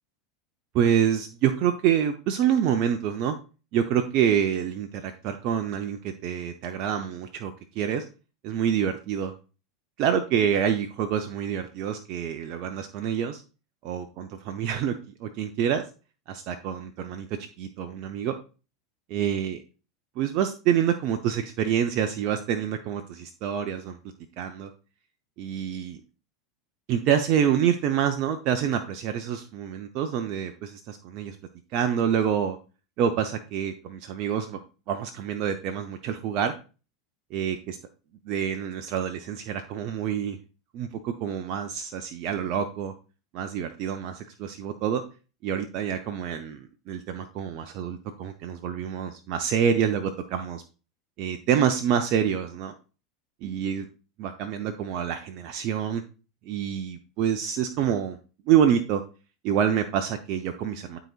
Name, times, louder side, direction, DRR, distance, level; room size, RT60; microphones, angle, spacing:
voice 1, 0.7-3.4 3.7-8.0 8.4-9.3 10.0-13.4 13.8-15.8 16.3-17.3 17.6-18.4 19.1-19.6 20.2-24.0 24.4-24.7 25.4-26.0 26.9-31.4 31.7-32.6 33.0-34.6 34.9-36.5 37.3-37.8 38.3-40.4 40.7-42.9 43.3-45.0 45.4-50.6 51.2-52.7 53.4-53.9 54.2-56.0 56.4-58.2 58.5-59.0 59.4-61.0, right 9 dB, 50° right, 6 dB, 0.7 m, -27 dB
12.0 x 4.0 x 2.4 m, 0.33 s
hypercardioid pair, 85°, 2 cm